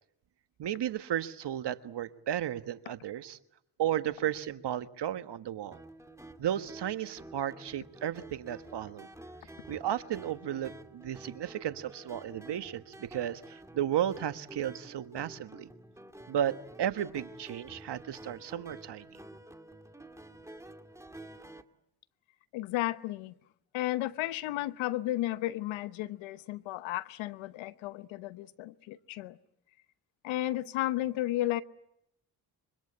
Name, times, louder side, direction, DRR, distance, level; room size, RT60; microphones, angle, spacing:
voice 1, 0.6-3.4 3.8-5.8 6.4-9.1 9.7-15.7 16.3-19.2, right 11 dB, 60° right, 11 dB, 1.5 m, -34 dB
sound 1, 5.7-21.6, right 1 dB, 5° right, 2.1 m, -50 dB
voice 2, 22.5-23.3 23.7-29.4 30.2-31.6, left 15 dB, 85° left, 15 dB, 1.0 m, -33 dB
25.0 x 24.0 x 8.6 m, 0.80 s
supercardioid pair, 55°, 46 cm